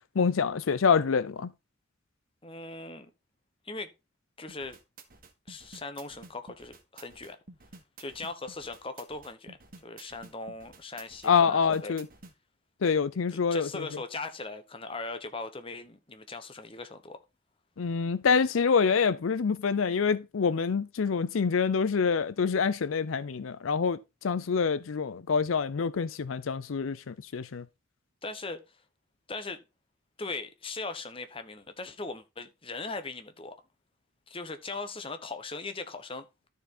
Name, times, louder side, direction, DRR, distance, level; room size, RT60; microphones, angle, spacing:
voice 1, 0.2-1.5 11.2-12.1 12.8-13.8 17.8-27.6, left 5 dB, 85° left, 0.5 m, -26 dB
voice 2, 2.4-3.1 3.6-3.9 4.4-4.8 5.5-7.4 8.0-9.6 9.8-11.9 13.5-17.2 28.2-28.6 29.3-29.6 30.2-33.6 34.3-36.3, left 3 dB, 25° left, 1.1 m, -39 dB
sound 1, 4.5-12.3, right 3 dB, 45° right, 1.6 m, -51 dB
13.0 x 4.7 x 4.3 m
head